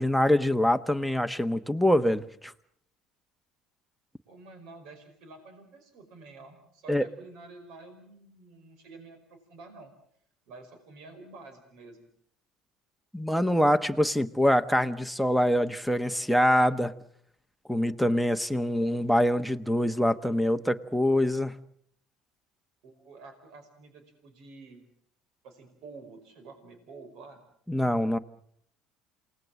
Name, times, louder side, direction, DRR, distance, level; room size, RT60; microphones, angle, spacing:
voice 1, 0.0-2.5 6.9-7.1 13.1-16.9 17.7-21.6 27.7-28.2, equal, ahead, 14 dB, 1.1 m, -24 dB
voice 2, 4.3-9.9 10.5-12.1 22.8-24.9 25.4-27.4, right 3 dB, 70° right, 7 dB, 5.1 m, -49 dB
28.5 x 19.5 x 7.5 m, 0.67 s
cardioid pair, 125°, 0 cm